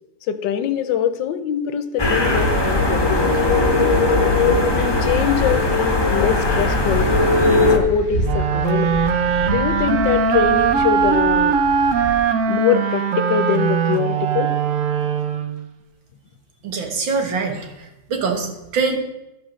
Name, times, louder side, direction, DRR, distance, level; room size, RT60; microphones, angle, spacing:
voice 1, 0.3-3.5 4.7-7.1 7.5-8.9 9.5-11.6 12.5-14.5, left 9 dB, 80° left, 11 dB, 1.4 m, -23 dB
sound 1, 2.0-7.8, left 2 dB, 15° left, 0.9 m, -18 dB
sound 2, 6.1-12.2, equal, 50° right, 3.3 m, -29 dB
sound 3, 8.2-15.7, right 6 dB, 65° right, 0.8 m, -20 dB
voice 2, 16.6-17.7 18.1-19.0, right 4 dB, 90° right, 4 dB, 2.1 m, -23 dB
13.0 x 4.6 x 6.2 m, 0.95 s
omnidirectional pair, 2.0 m